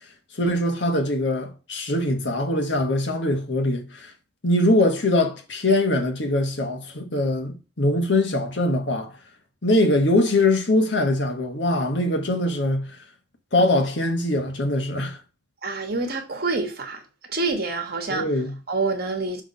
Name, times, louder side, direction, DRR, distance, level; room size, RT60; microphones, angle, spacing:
voice 1, 0.3-4.1 4.4-9.2 9.6-13.0 13.5-15.2 18.1-18.5, left 1 dB, 80° left, 1.5 m, -22 dB
voice 2, 15.6-17.0 17.3-18.3 18.7-19.4, right 3 dB, 60° right, 1.4 m, -27 dB
6.3 x 3.6 x 5.3 m
head